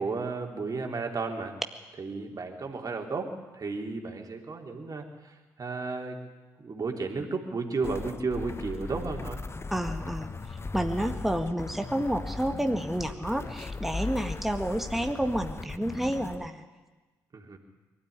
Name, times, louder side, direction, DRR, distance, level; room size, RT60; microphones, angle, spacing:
voice 1, 0.0-1.6 2.0-6.2 6.6-9.4 17.3-17.6, right 4 dB, 40° right, 3 dB, 3.6 m, -33 dB
sound 1, 7.8-16.5, left 3 dB, 25° left, 1.0 m, -38 dB
voice 2, 9.7-10.3 10.7-16.6, right 1 dB, 5° right, 6 dB, 1.8 m, -30 dB
23.0 x 13.0 x 9.7 m, 1.2 s
figure-of-eight pair, 40°, 9 cm